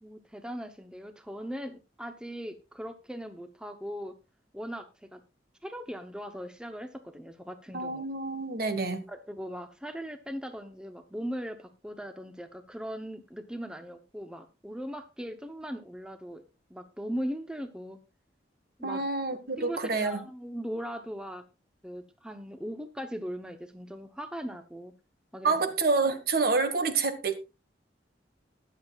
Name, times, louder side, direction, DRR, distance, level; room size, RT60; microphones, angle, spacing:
voice 1, 0.0-4.1 4.5-4.8 5.1-5.2 5.6-8.1 9.1-16.4 16.7-18.0 18.8-19.0 19.6-21.4 21.8-24.9 25.3-25.7 26.8-26.9, equal, 5° right, 0.8 m, -39 dB
voice 2, 7.7-9.0 18.8-20.2 25.4-27.4, right 4 dB, 55° right, 1.5 m, -28 dB
20.5 x 7.3 x 2.4 m
head